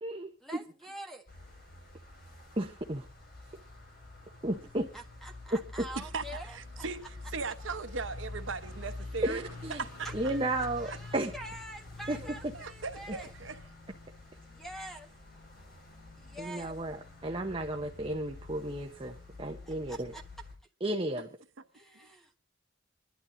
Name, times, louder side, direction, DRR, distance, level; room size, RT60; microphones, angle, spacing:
voice 1, 0.4-1.3 4.6-6.6 10.0-13.3 14.4-15.1 16.2-16.7 19.6-20.2 21.7-22.4, right 1 dB, ahead, 1.5 m, -46 dB
sound 1, 1.3-20.5, left 2 dB, 50° left, 4.6 m, -47 dB
voice 2, 2.6-3.1 4.4-4.9 9.2-9.8 10.1-11.3 12.1-12.2 16.4-20.1 20.8-21.3, right 1 dB, 25° right, 0.8 m, -33 dB
voice 3, 6.5-7.0 7.3-10.1 12.5-13.6, right 4 dB, 75° right, 1.0 m, -38 dB
27.5 x 11.5 x 2.7 m
head